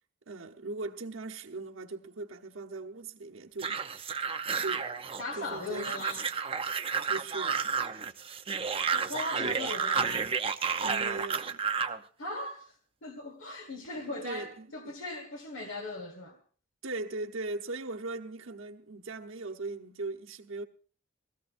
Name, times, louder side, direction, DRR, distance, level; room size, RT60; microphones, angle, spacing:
voice 1, 0.3-3.8 4.6-4.9 5.4-5.9 7.1-7.7 10.8-11.6 14.1-14.9 16.8-20.6, right 3 dB, 75° right, 1.1 m, -39 dB
sound 1, 3.6-12.0, right 5 dB, 30° right, 0.7 m, -31 dB
voice 2, 5.2-6.3 8.9-10.3 12.2-16.4, left 2 dB, 75° left, 1.6 m, -39 dB
21.5 x 16.5 x 2.6 m
head